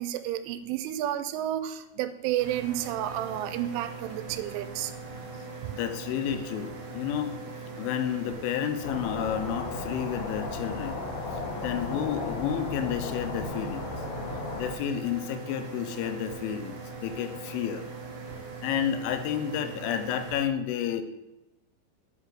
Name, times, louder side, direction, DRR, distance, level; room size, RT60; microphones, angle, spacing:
voice 1, 0.0-4.9 5.6-5.7, right 12 dB, 90° right, 10 dB, 3.1 m, -31 dB
sound 1, 2.4-20.4, right 4 dB, 50° right, 2.7 m, -41 dB
voice 2, 5.1-11.0 11.3-13.9 14.5-17.8 18.6-21.0, left 9 dB, 85° left, 8 dB, 3.2 m, -31 dB
sound 2, 8.8-14.7, left 4 dB, 70° left, 2.6 m, -35 dB
8.2 x 5.7 x 6.2 m, 0.99 s
omnidirectional pair, 5.5 m